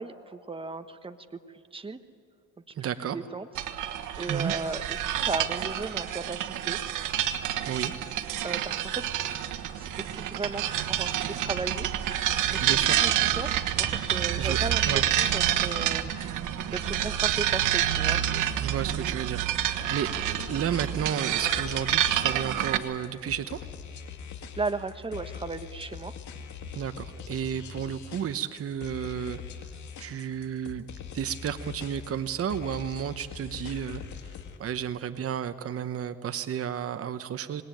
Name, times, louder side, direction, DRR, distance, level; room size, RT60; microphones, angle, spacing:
voice 1, 0.0-1.4 1.7-2.0 3.1-3.7 4.2-6.8 8.4-9.0 9.7-11.9 12.5-13.1 13.4-16.1 16.7-18.2 24.6-26.1, right 3 dB, 15° right, 8 dB, 1.3 m, -36 dB
voice 2, 2.8-3.2 4.3-4.5 7.6-7.9 12.6-13.0 14.4-14.6 14.9-15.0 18.6-23.7 26.7-29.4 30.0-30.8 31.1-34.0 34.6-37.6, right 9 dB, 50° right, 9 dB, 0.9 m, -32 dB
sound 1, 3.5-22.8, right 11 dB, 90° right, 1.3 m, -28 dB
sound 2, 19.8-34.6, left 7 dB, 70° left, 2.3 m, -42 dB
26.0 x 20.5 x 9.2 m, 2.6 s
cardioid pair, 90°, 30 cm